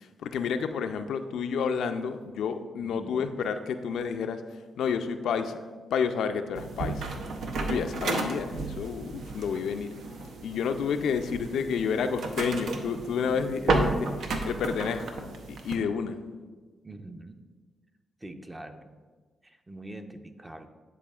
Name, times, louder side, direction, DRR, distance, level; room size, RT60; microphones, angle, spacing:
voice 1, 0.0-4.4 4.8-5.6 5.9-7.1 7.7-10.0 10.4-14.1 14.4-16.2, left 6 dB, 80° left, 8 dB, 0.3 m, -30 dB
voice 2, 2.8-3.2 16.8-17.4 18.2-19.0 19.4-20.7, right 1 dB, 20° right, 7 dB, 0.5 m, -44 dB
sound 1, 6.6-15.8, right 3 dB, 75° right, 0.6 m, -33 dB
9.9 x 4.1 x 2.3 m, 1.4 s
cardioid pair, 60°, 0 cm